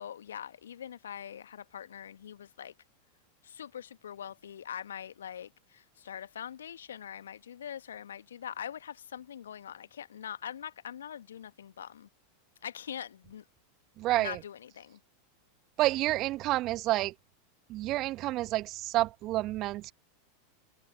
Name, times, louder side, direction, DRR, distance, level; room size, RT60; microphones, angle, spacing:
voice 1, 0.0-2.7 3.4-12.1 12.6-13.5 14.1-15.0, left 9 dB, 70° left, 1.6 m, -43 dB
voice 2, 14.0-14.4 15.8-17.1 17.7-19.9, right 17 dB, 40° right, 1.7 m, -29 dB
figure-of-eight pair, 85°, 0 cm